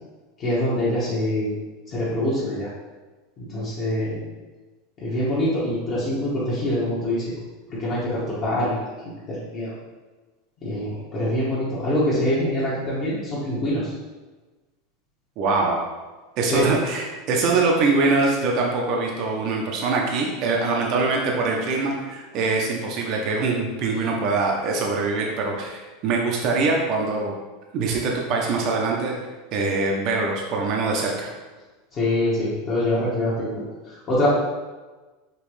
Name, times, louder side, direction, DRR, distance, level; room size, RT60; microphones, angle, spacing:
voice 1, 0.4-1.5 1.9-2.7 3.4-4.2 5.0-7.3 7.7-8.9 9.3-9.7 10.6-13.9 16.5-16.6 31.9-34.3, left 1 dB, 30° left, -8 dB, 1.2 m, -25 dB
voice 2, 15.4-15.8 16.4-27.3 27.7-29.1 29.5-31.3, right 3 dB, 40° right, -1 dB, 0.6 m, -23 dB
5.2 x 2.9 x 3.2 m, 1.2 s
supercardioid pair, 155°, 0 cm